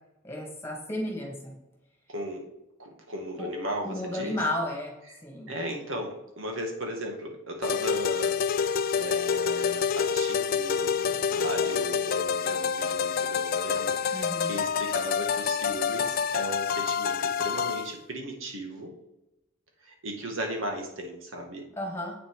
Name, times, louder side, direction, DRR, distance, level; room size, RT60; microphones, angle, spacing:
voice 1, 0.2-1.5 3.4-3.5 3.8-4.9 5.2-5.5 14.1-14.5 21.7-22.1, left 1 dB, 10° left, -1 dB, 2.5 m, -33 dB
voice 2, 2.1-2.5 2.8-4.4 5.5-19.0 19.8-21.7, equal, 85° right, 2 dB, 2.1 m, -36 dB
sound 1, 7.6-17.9, left 7 dB, 50° left, 0.3 m, -27 dB
8.5 x 6.3 x 4.9 m, 0.90 s
head